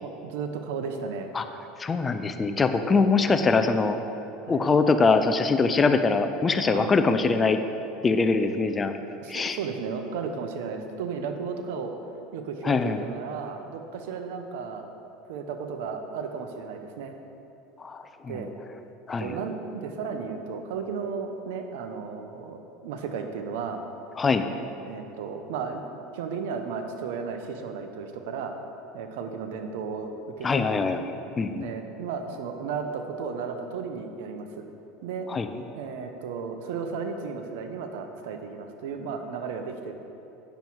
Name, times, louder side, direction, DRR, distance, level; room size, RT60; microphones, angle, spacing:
voice 1, 0.0-1.3 2.9-3.0 4.4-4.7 6.7-6.9 9.2-11.9 12.3-14.9 15.3-17.2 18.3-18.5 19.2-23.8 24.8-25.8 26.1-28.5 28.9-30.8 31.5-34.7 35.0-35.3 35.7-39.9, right 5 dB, 80° right, 6 dB, 0.9 m, -34 dB
voice 2, 1.8-4.0 4.5-7.6 8.0-8.9 9.3-9.6 12.6-13.1 17.8-18.5 19.1-19.3 24.2-24.4 30.4-31.0 31.4-31.7 35.3-35.5, left 4 dB, 20° left, 8 dB, 0.5 m, -23 dB
9.1 x 7.1 x 4.7 m, 2.9 s
supercardioid pair, 115°, 0 cm